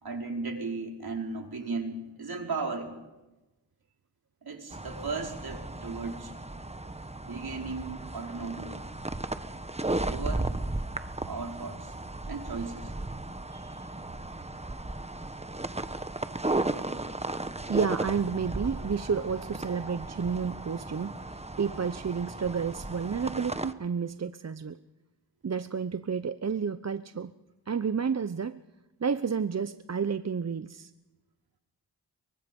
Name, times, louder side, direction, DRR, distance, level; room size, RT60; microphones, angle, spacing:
voice 1, 0.0-3.0 4.4-6.3 7.3-8.9 10.0-10.5 11.2-11.9 12.3-12.9 13.5-13.8, right 4 dB, 60° right, 1 dB, 4.9 m, -36 dB
sound 1, 4.7-23.7, right 2 dB, 15° right, 1.4 m, -35 dB
voice 2, 17.7-24.8 25.4-27.3 27.7-28.6 29.0-30.9, right 6 dB, 40° right, 12 dB, 0.8 m, -31 dB
28.0 x 24.0 x 5.4 m, 1.1 s
cardioid pair, 50°, 42 cm